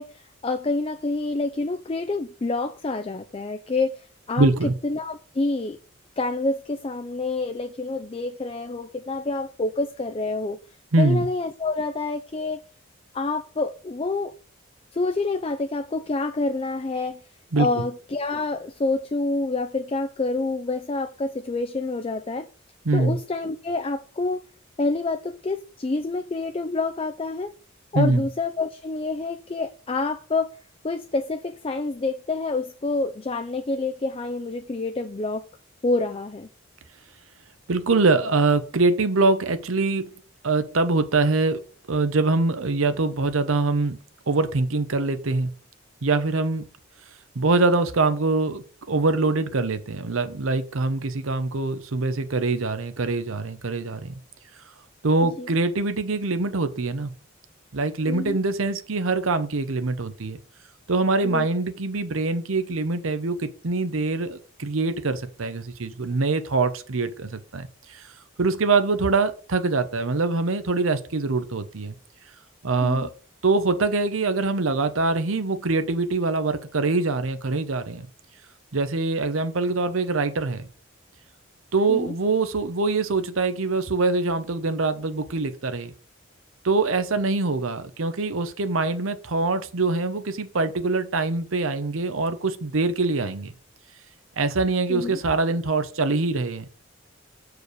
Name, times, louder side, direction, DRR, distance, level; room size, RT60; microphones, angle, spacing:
voice 1, 0.0-4.5 4.8-5.8 6.2-10.6 11.0-12.7 13.1-14.3 14.9-17.2 17.6-22.5 22.9-24.4 24.8-27.5 27.9-30.6 30.8-35.4 35.8-36.5 55.4-55.5 58.1-58.4 61.2-61.5 72.8-73.1 81.9-82.2 94.9-95.2, left 3 dB, 25° left, 0.4 m, -27 dB
voice 2, 4.4-4.7 10.9-11.3 17.5-17.8 22.8-23.2 27.9-28.3 37.7-40.1 40.4-41.6 41.9-44.0 44.3-45.5 46.0-46.7 47.4-54.1 55.0-57.1 57.7-60.4 60.9-68.0 68.4-72.0 72.6-73.1 73.4-78.1 78.7-80.7 81.7-85.9 86.6-93.6 94.4-96.6, right 3 dB, 80° right, 0.8 m, -24 dB
6.7 x 4.9 x 6.2 m
head